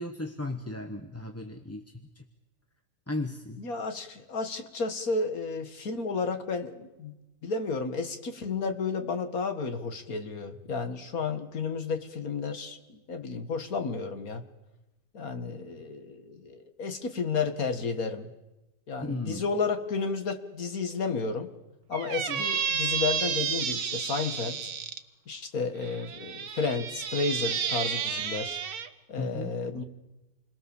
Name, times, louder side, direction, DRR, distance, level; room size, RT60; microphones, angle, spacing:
voice 1, 0.0-2.2 3.1-3.6 19.1-19.4 22.3-22.4 29.2-29.5, left 2 dB, 10° left, 5 dB, 1.1 m, -36 dB
voice 2, 3.6-7.2 7.4-14.4 15.1-18.3 18.9-21.5 21.9-24.7 25.3-28.6 29.1-29.8, left 4 dB, 70° left, 8 dB, 2.2 m, -32 dB
Squeak, 21.9-25.0 25.8-28.9, right 7 dB, 80° right, 1.6 m, -31 dB
29.0 x 21.5 x 7.2 m, 1.0 s
omnidirectional pair, 1.6 m